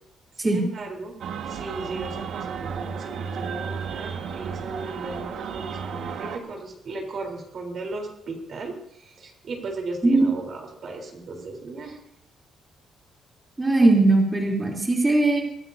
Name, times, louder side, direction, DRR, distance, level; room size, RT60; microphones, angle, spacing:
voice 1, 0.4-1.1 1.5-12.0, right 3 dB, 40° right, 2 dB, 3.7 m, -36 dB
sound 1, 1.2-6.4, right 6 dB, 60° right, 1.6 m, -33 dB
voice 2, 13.6-15.4, right 2 dB, 15° right, 0 dB, 3.3 m, -19 dB
22.5 x 16.5 x 2.7 m, 0.73 s
cardioid pair, 180°, 0 cm